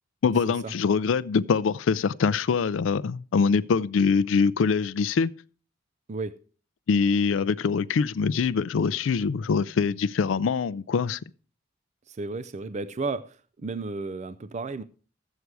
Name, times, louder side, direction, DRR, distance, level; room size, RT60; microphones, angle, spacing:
voice 1, 0.2-5.3 6.9-11.2, left 5 dB, 80° left, 0.4 m, -24 dB
voice 2, 6.1-6.4 12.1-14.8, right 3 dB, 35° right, 0.4 m, -33 dB
12.5 x 8.2 x 4.6 m
head